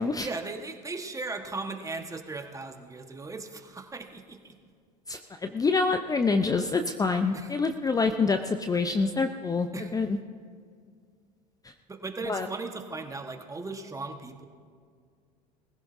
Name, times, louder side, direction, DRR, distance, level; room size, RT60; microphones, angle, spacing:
voice 1, 0.2-4.6 7.3-7.5 9.7-9.9 11.9-14.5, right 3 dB, 15° right, 5 dB, 1.4 m, -37 dB
voice 2, 5.1-10.2 11.6-11.7 12.3-12.5, left 4 dB, 15° left, 7 dB, 0.6 m, -26 dB
21.5 x 15.5 x 2.7 m, 2.1 s
hypercardioid pair, 80°, 21 cm